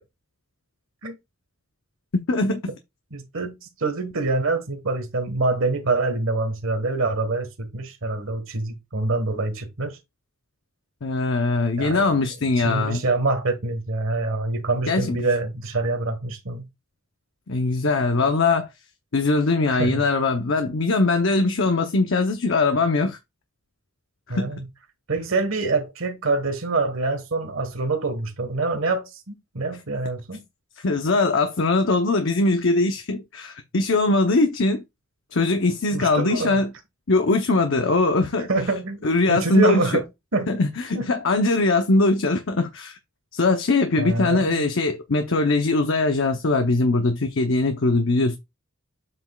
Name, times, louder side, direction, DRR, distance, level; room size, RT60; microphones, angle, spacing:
voice 1, 2.3-2.6 11.0-13.0 14.9-15.2 17.5-18.7 19.1-23.2 24.3-24.5 30.8-34.8 35.3-36.7 37.1-38.5 39.0-39.9 40.5-43.0 43.3-48.4, left 3 dB, 60° left, 0.8 m, -21 dB
voice 2, 3.1-10.0 11.8-12.1 12.6-16.6 19.7-20.0 24.3-24.6 25.1-30.4 35.9-36.6 38.5-39.0 39.3-40.0 40.3-40.5 40.9-41.1 44.0-44.6, right 3 dB, 70° right, 1.5 m, -25 dB
7.5 x 6.0 x 2.3 m
head